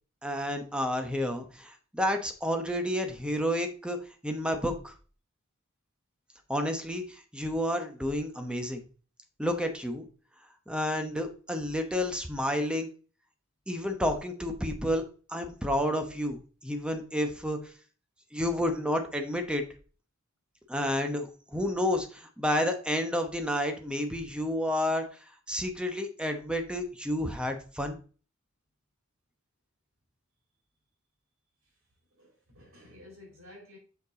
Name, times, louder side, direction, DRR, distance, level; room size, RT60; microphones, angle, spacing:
voice 1, 0.2-4.0 4.2-4.9 6.5-8.8 9.4-10.0 10.7-12.9 13.7-15.0 15.3-17.6 18.3-19.6 20.7-25.1 25.5-28.0, equal, 5° right, 0.9 m, -30 dB
voice 2, 32.1-33.8, left 1 dB, 90° right, 4.2 m, -52 dB
6.8 x 5.1 x 3.9 m
head